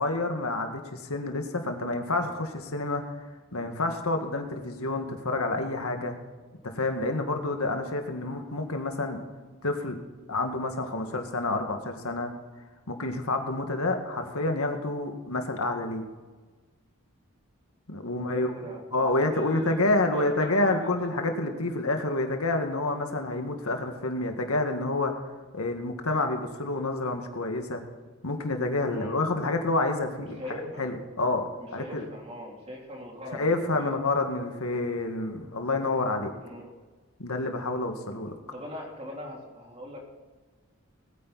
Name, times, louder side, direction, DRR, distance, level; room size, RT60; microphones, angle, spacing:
voice 1, 0.0-3.0 3.5-6.2 6.6-9.2 9.6-10.0 10.3-12.3 12.9-16.1 17.9-18.5 18.9-25.1 25.5-27.8 28.2-30.4 30.8-32.1 33.3-36.3 37.2-38.3, left 2 dB, 90° left, 5 dB, 1.9 m, -28 dB
voice 2, 18.1-18.8 19.3-19.8 20.1-21.0 28.9-29.2 30.3-30.9 31.6-33.9 36.4-36.7 38.5-40.0, left 1 dB, 30° right, -2 dB, 3.4 m, -41 dB
20.0 x 9.4 x 4.2 m, 1.3 s
head